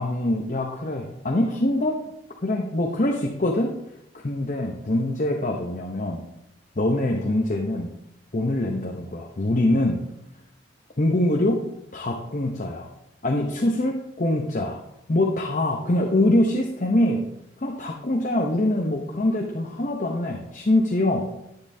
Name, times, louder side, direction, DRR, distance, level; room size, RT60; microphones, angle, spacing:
voice 1, 0.0-2.1 2.4-3.7 4.1-6.2 6.8-7.9 8.3-10.0 11.0-11.6 11.9-12.9 13.2-14.8 15.1-17.3 17.6-21.3, left 1 dB, 40° left, 1 dB, 0.8 m, -24 dB
10.5 x 9.7 x 2.7 m, 0.85 s
head